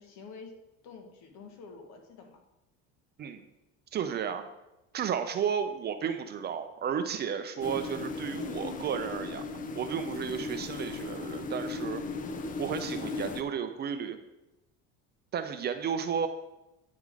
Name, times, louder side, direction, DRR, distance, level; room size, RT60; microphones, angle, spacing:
voice 1, 0.0-2.4 10.2-10.5, left 5 dB, 65° left, 4 dB, 1.4 m, -49 dB
voice 2, 3.9-4.4 4.9-9.4 9.7-12.0 12.6-14.2 15.3-16.3, right 7 dB, 35° right, 9 dB, 0.5 m, -33 dB
sound 1, 7.6-13.4, left 4 dB, 25° left, 0.5 m, -37 dB
9.3 x 3.6 x 4.8 m, 0.95 s
cardioid pair, 125°, 30 cm